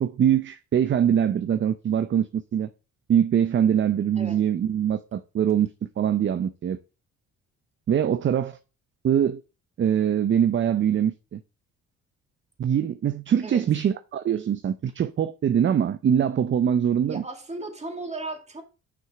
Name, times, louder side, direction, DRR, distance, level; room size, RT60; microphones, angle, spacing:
voice 1, 0.0-2.7 3.1-5.7 6.0-6.8 7.9-8.6 9.0-9.4 9.8-11.4 12.6-17.2, right 9 dB, 40° right, 0.5 m, -23 dB
voice 2, 17.1-18.6, right 2 dB, 20° right, 2.2 m, -36 dB
6.3 x 6.0 x 4.8 m
cardioid pair, 90°, 30 cm